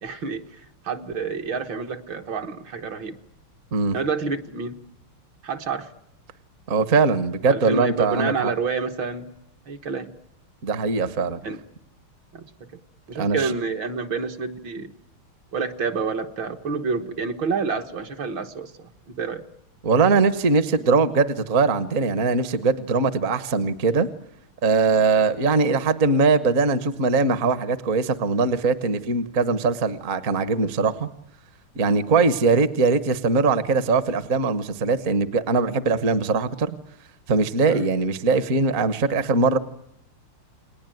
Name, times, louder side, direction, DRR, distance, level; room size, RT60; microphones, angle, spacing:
voice 1, 0.0-3.2 3.9-4.8 5.4-5.9 7.5-9.3 9.7-10.1 11.4-11.6 12.3-12.7 13.1-14.9 15.5-19.4 37.7-37.9, right 4 dB, 65° right, 4 dB, 2.1 m, -28 dB
voice 2, 6.7-8.5 10.6-11.4 13.1-13.5 19.8-24.1 24.6-31.1 31.7-36.8 37.3-39.6, right 4 dB, 45° right, 12 dB, 1.3 m, -21 dB
29.5 x 20.5 x 9.1 m, 0.78 s
omnidirectional pair, 2.4 m